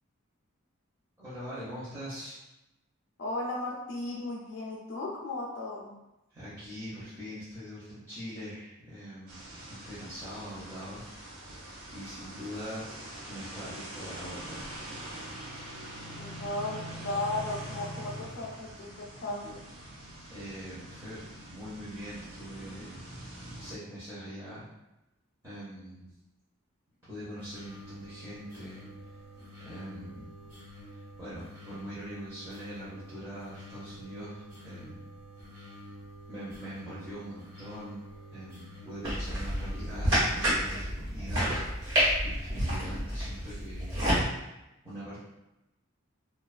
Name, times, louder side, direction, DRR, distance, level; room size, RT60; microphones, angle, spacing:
voice 1, 1.2-2.4 6.3-11.0 11.9-12.9 13.3-14.7 20.3-21.2 21.5-23.0 23.6-24.6 25.4-26.1 27.1-29.1 29.6-30.3 30.9-35.0 36.3-38.0 38.3-41.4 42.2-43.9 44.8-45.2, equal, 15° right, -13 dB, 0.6 m, -42 dB
voice 2, 3.2-5.9 16.2-19.6, left 2 dB, 55° left, -2 dB, 0.4 m, -35 dB
sound 1, 9.3-23.7, right 1 dB, 85° right, 0.6 m, -44 dB
sound 2, 27.4-40.5, equal, 35° right, 1.1 m, -48 dB
sound 3, 39.0-44.2, equal, 65° right, 1.1 m, -29 dB
2.4 x 2.3 x 2.4 m, 0.93 s
head